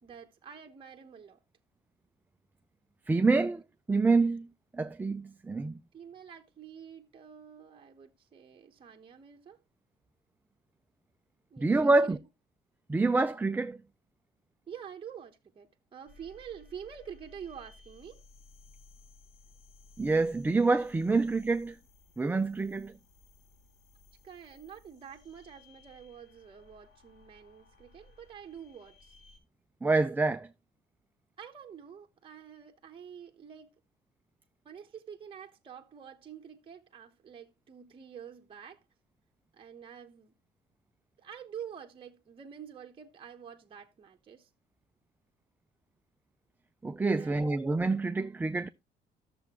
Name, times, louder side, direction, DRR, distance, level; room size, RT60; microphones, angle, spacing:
voice 1, 0.0-1.4 5.9-9.6 11.5-11.7 12.0-12.2 14.7-18.2 24.2-29.1 31.4-33.7 34.6-38.8 39.5-40.3 41.2-44.5 47.2-47.6, right 8 dB, 30° right, 1.0 m, -47 dB
voice 2, 3.1-3.6 3.9-4.5 4.7-5.8 11.6-12.2 12.9-13.8 20.0-21.8 22.2-22.9 29.8-30.5 46.8-48.7, right 3 dB, 10° right, 0.4 m, -27 dB
sound 1, 16.1-29.4, left 3 dB, 75° left, 4.6 m, -59 dB
12.5 x 7.0 x 2.9 m
cardioid pair, 110°, 17 cm